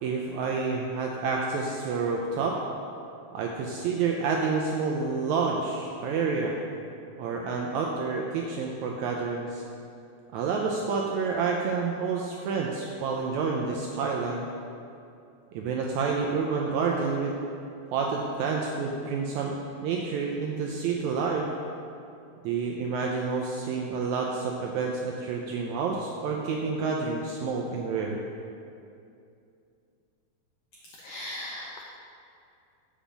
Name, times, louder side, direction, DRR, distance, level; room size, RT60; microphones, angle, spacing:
voice 1, 0.0-2.6 3.3-6.5 7.2-9.6 10.3-14.4 15.5-17.3 17.9-19.6 19.8-21.5 22.4-28.2, right 5 dB, 85° right, 0 dB, 1.7 m, -29 dB
voice 2, 31.0-31.8, left 1 dB, 85° left, -1 dB, 1.4 m, -37 dB
7.2 x 5.0 x 7.0 m, 2.5 s
omnidirectional pair, 3.8 m